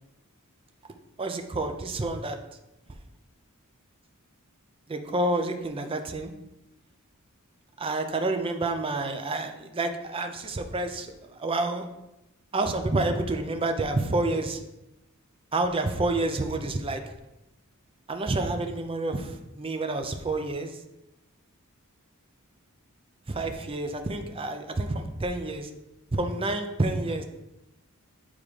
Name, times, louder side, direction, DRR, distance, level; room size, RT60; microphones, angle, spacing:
voice 1, 1.2-2.4 4.9-6.3 7.8-11.9 12.5-14.6 15.5-17.0 18.1-20.7 23.3-25.7 26.1-27.2, right 2 dB, 25° right, 5 dB, 0.5 m, -29 dB
8.6 x 3.7 x 3.2 m, 0.92 s
head